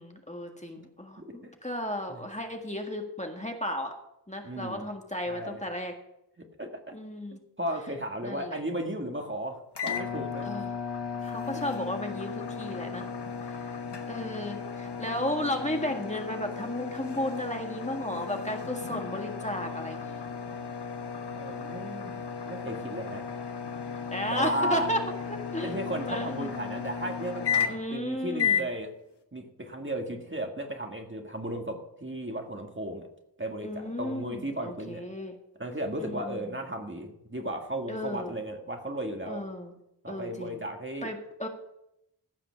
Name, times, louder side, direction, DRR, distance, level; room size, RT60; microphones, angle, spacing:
voice 1, 0.0-3.9 4.3-5.9 6.9-7.4 8.2-8.6 10.4-10.8 11.2-13.1 14.1-20.3 24.1-25.0 25.3-26.5 27.7-28.7 33.6-35.4 36.0-36.4 37.9-38.3 39.3-39.7 40.1-40.6 41.0-41.5, left 1 dB, 15° left, 3 dB, 1.7 m, -34 dB
voice 2, 1.2-1.5 2.1-2.2 4.4-4.9 5.3-5.6 6.4-7.0 7.6-10.5 11.5-11.6 21.3-22.1 22.4-23.2 24.3-24.9 25.6-28.9 29.3-33.1 33.4-35.0 35.6-39.4 40.0-41.1, right 1 dB, 30° right, 3 dB, 1.8 m, -35 dB
sound 1, 9.7-28.0 28.4-28.7, left 6 dB, 90° left, 1.1 m, -34 dB
15.5 x 5.8 x 5.8 m, 0.82 s
wide cardioid pair, 45°, 39 cm